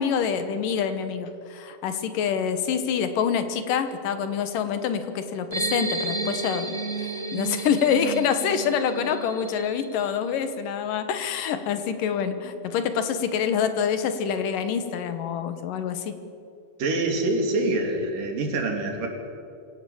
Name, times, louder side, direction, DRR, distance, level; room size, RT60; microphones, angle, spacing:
voice 1, 0.0-6.8 7.3-16.1, left 7 dB, 80° left, 9 dB, 2.9 m, -26 dB
sound 1, 5.5-10.2, right 3 dB, 40° right, 0.9 m, -32 dB
voice 2, 16.8-19.1, right 2 dB, 80° right, 3 dB, 4.3 m, -25 dB
25.5 x 17.0 x 7.1 m, 2.6 s
omnidirectional pair, 3.8 m